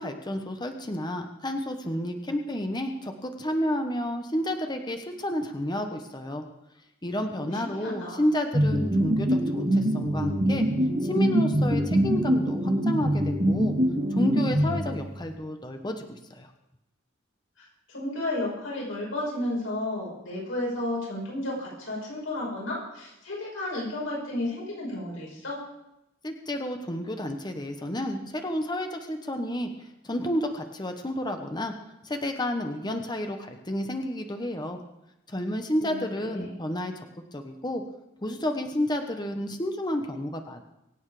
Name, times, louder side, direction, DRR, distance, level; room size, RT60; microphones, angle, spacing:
voice 1, 0.0-6.4 7.0-10.6 11.0-13.7 14.1-16.5 26.2-31.7 32.0-34.8 35.3-37.1 37.3-37.8 38.2-40.6, left 1 dB, 20° left, 5 dB, 1.2 m, -31 dB
voice 2, 7.4-8.2 17.6-17.7 17.9-25.6 35.8-36.6, left 1 dB, 85° left, -3 dB, 6.0 m, -33 dB
sound 1, 8.5-15.2, equal, 30° right, 4.8 m, -24 dB
24.0 x 8.4 x 5.0 m, 0.87 s
head